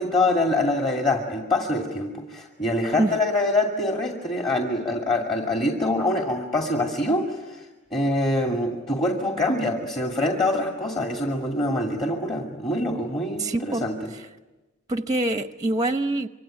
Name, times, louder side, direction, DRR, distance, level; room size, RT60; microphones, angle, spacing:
voice 1, 0.0-7.7 7.9-14.1, left 1 dB, 25° left, 2 dB, 2.4 m, -25 dB
voice 2, 13.4-13.9 14.1-14.2 14.9-16.3, right 2 dB, 15° right, 9 dB, 0.8 m, -25 dB
26.5 x 24.5 x 9.1 m, 1.1 s
head